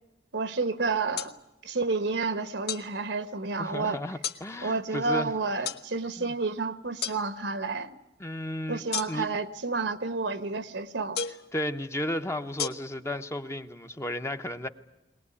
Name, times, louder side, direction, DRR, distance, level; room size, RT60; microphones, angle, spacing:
voice 1, 0.3-1.3 1.6-4.0 4.6-8.0 8.7-11.2, right 3 dB, 70° right, 1.1 m, -30 dB
sound 1, 1.2-1.3 2.7-2.9 4.2-4.4 5.6-5.8 7.0-7.2 8.9-9.4 11.1-11.5 12.6-12.7, left 7 dB, 60° left, 1.0 m, -32 dB
voice 2, 3.6-5.3 6.2-6.3 8.2-8.8 9.1-9.3 11.5-14.7, left 1 dB, 15° left, 0.8 m, -33 dB
21.5 x 19.5 x 9.8 m
head